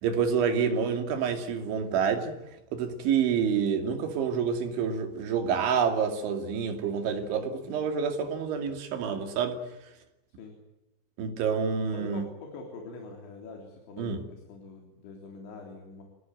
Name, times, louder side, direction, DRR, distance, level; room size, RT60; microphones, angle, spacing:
voice 1, 0.0-2.3 2.7-9.6 11.2-12.2 14.0-14.2, right 6 dB, 75° right, 5.0 m, -28 dB
voice 2, 11.9-16.0, left 3 dB, 75° left, 6.0 m, -44 dB
28.5 x 17.0 x 9.3 m
omnidirectional pair, 5.4 m